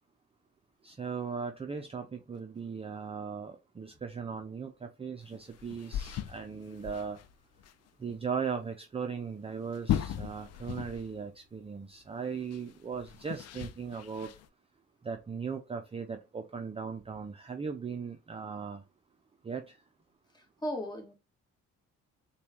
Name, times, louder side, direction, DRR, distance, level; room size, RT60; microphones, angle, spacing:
voice 1, 0.8-7.2 8.0-14.3 15.0-18.8 19.4-19.8, right 6 dB, 20° right, 0.4 m, -38 dB
sound 1, 5.3-7.3 7.6-7.7 8.1-8.2 9.6-11.3 11.5-11.6 12.5-14.5, left 11 dB, 55° left, 0.5 m, -37 dB
voice 2, 20.3-21.1, equal, 15° left, 1.2 m, -37 dB
4.0 x 2.3 x 3.3 m
cardioid pair, 90°, 30 cm